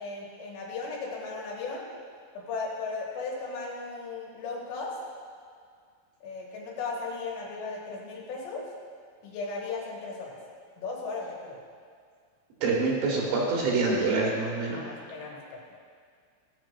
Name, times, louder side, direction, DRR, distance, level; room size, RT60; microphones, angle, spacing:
voice 1, 0.0-1.8 2.3-5.0 6.2-8.6 9.2-10.4 10.8-11.6 14.7-15.8, left 4 dB, 75° left, -3 dB, 3.3 m, -36 dB
voice 2, 12.6-14.8, right 3 dB, 75° right, -3 dB, 3.4 m, -26 dB
15.5 x 7.5 x 2.4 m, 2.1 s
omnidirectional pair, 5.4 m